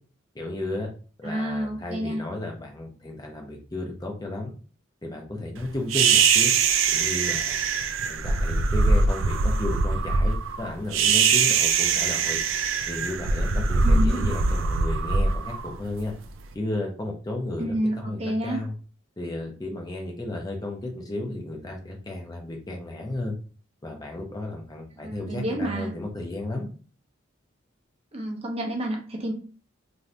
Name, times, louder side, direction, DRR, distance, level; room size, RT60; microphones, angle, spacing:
voice 1, 0.3-0.9 1.2-4.5 5.0-6.5 6.9-7.6 8.0-12.4 12.9-16.1 16.5-18.7 19.2-23.3 23.8-26.7, left 2 dB, 20° left, 1 dB, 0.5 m, -33 dB
voice 2, 1.2-2.2 13.8-14.2 17.6-18.6 25.0-25.9 28.1-29.3, right 1 dB, 30° right, 2 dB, 0.6 m, -29 dB
sound 1, 5.9-16.3, right 4 dB, 85° right, 0.4 m, -22 dB
2.6 x 2.5 x 3.2 m, 0.39 s
head